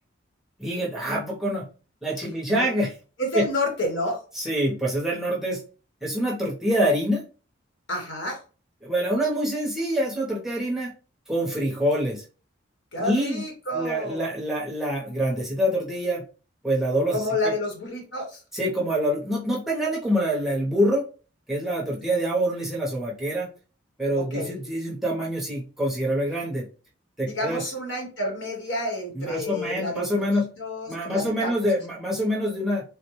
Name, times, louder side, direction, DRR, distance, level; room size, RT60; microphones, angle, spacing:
voice 1, 0.6-1.7 2.0-2.9 3.3-3.4 4.4-5.6 6.0-7.2 8.8-10.9 11.3-12.2 13.0-13.4 13.7-16.2 16.6-17.2 18.5-21.0 21.5-23.5 24.0-26.7 27.2-27.6 29.2-30.5 30.9-32.8, equal, ahead, -4 dB, 0.7 m, -25 dB
voice 2, 3.2-4.2 7.9-8.4 12.9-14.2 17.1-18.4 24.3-24.5 27.3-31.5, left 1 dB, 65° left, 1 dB, 1.0 m, -29 dB
3.5 x 2.1 x 3.0 m, 0.36 s
head